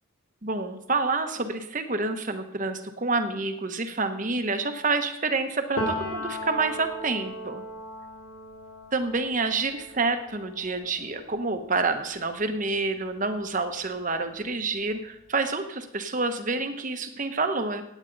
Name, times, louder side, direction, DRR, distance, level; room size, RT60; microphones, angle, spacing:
voice 1, 0.4-7.6 8.9-17.8, right 3 dB, 40° right, 8 dB, 1.0 m, -28 dB
Piano, 5.8-13.4 13.7-15.3, equal, 85° left, 2.4 m, -38 dB
16.5 x 9.1 x 4.0 m, 0.83 s
head